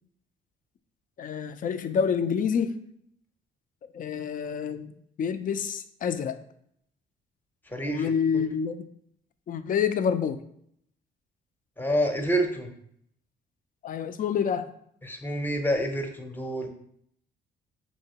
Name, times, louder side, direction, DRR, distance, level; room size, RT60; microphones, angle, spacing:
voice 1, 1.2-2.8 3.9-4.9 5.2-6.4 7.8-8.8 9.5-10.4 13.8-14.7, left 7 dB, 45° left, 11 dB, 0.4 m, -27 dB
voice 2, 7.7-8.1 11.8-12.7 15.0-16.7, equal, 10° left, 4 dB, 0.7 m, -28 dB
5.4 x 2.9 x 2.8 m, 0.70 s
cardioid pair, 90°, 20 cm